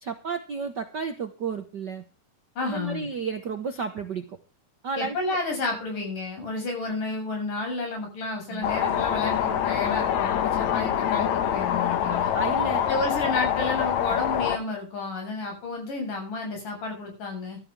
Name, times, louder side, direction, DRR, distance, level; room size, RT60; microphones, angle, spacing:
voice 1, 0.0-2.0 2.6-4.4 4.8-5.2 8.5-8.6 12.0-12.8, right 5 dB, 60° right, 8 dB, 1.1 m, -32 dB
voice 2, 2.6-3.1 5.0-12.3 12.9-17.6, left 3 dB, 90° left, 3 dB, 8.9 m, -31 dB
sound 1, 8.6-14.6, left 9 dB, 70° left, 2.5 m, -25 dB
14.5 x 13.5 x 3.6 m, 0.31 s
omnidirectional pair, 3.6 m